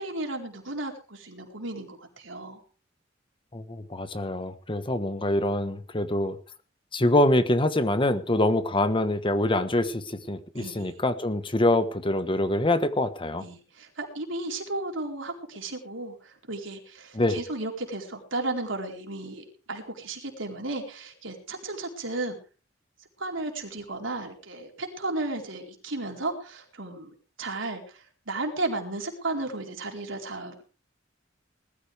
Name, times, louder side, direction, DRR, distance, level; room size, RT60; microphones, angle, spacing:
voice 1, 0.0-2.6 10.5-10.9 13.4-22.4 23.2-27.1 27.4-30.6, right 2 dB, 80° right, 2 dB, 4.3 m, -34 dB
voice 2, 3.5-6.4 6.9-13.4 17.1-17.4, left 1 dB, 25° left, 11 dB, 1.3 m, -25 dB
20.0 x 14.0 x 3.5 m, 0.35 s
head